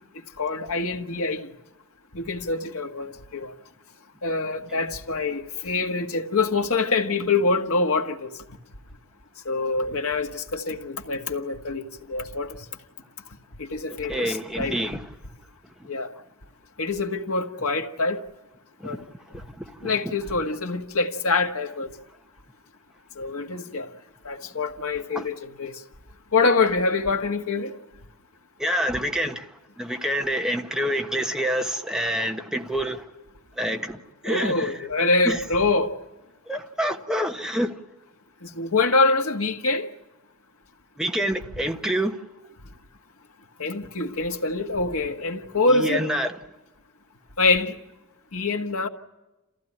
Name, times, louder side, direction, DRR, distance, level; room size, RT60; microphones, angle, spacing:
voice 1, 0.4-1.5 2.1-3.5 4.2-8.3 9.4-12.6 13.6-14.8 15.9-16.1 16.8-18.2 18.8-19.0 19.8-21.9 23.2-23.9 24.2-25.7 26.3-27.7 34.2-35.9 38.4-39.9 43.6-46.0 47.4-47.8 48.3-48.9, left 3 dB, 90° left, 1.7 m, -25 dB
voice 2, 14.1-15.0 18.8-19.1 19.3-20.1 25.1-25.3 28.6-29.5 29.8-33.0 33.6-34.7 35.2-35.4 36.5-37.7 41.0-42.2 45.7-46.3, equal, 5° right, 1.3 m, -27 dB
29.0 x 15.0 x 9.9 m
head